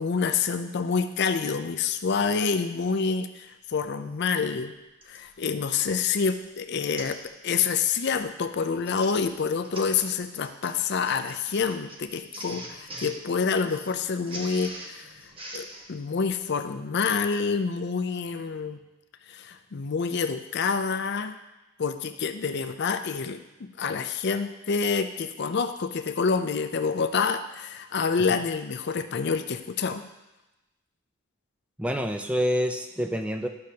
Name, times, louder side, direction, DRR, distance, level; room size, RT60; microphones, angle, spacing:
voice 1, 0.0-4.7 5.1-7.2 7.4-15.1 15.5-18.8 19.3-21.4 21.8-30.0, left 5 dB, 55° left, 9 dB, 0.5 m, -27 dB
Printer, 3.8-3.9 5.0-5.3 5.9-6.1 6.4-6.5 7.0-7.2 7.6-7.8 8.6-15.9, right 1 dB, 25° right, 1.1 m, -43 dB
voice 2, 31.8-33.5, equal, 5° right, 5 dB, 0.4 m, -27 dB
12.0 x 6.4 x 2.8 m, 1.0 s
head